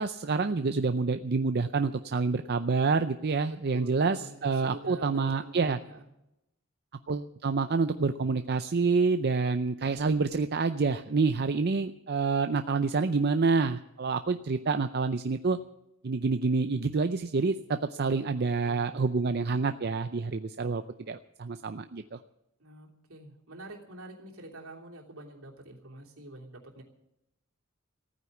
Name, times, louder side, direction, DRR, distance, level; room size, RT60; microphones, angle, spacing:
voice 1, 0.0-5.8 7.1-15.6 16.0-22.2, right 4 dB, 50° right, 9 dB, 0.5 m, -28 dB
voice 2, 3.7-6.1 18.0-19.0 22.6-26.8, right 1 dB, 75° right, 0 dB, 3.1 m, -46 dB
15.5 x 9.4 x 8.3 m, 0.84 s
head